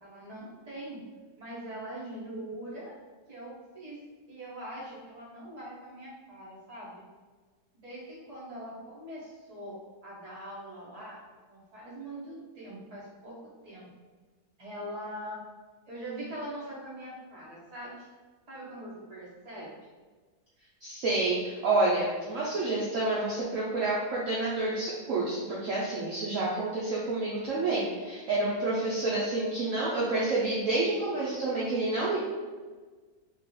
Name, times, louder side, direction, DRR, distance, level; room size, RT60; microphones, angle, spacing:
voice 1, 0.0-1.0 1.4-2.9 3.3-4.0 4.3-7.0 7.8-11.2 11.5-13.9 14.6-15.4 15.9-18.1 18.5-19.7, right 1 dB, 25° right, -7 dB, 1.1 m, -42 dB
voice 2, 20.8-32.2, right 2 dB, 60° right, -6 dB, 0.9 m, -29 dB
3.1 x 2.8 x 3.7 m, 1.4 s
omnidirectional pair, 1.7 m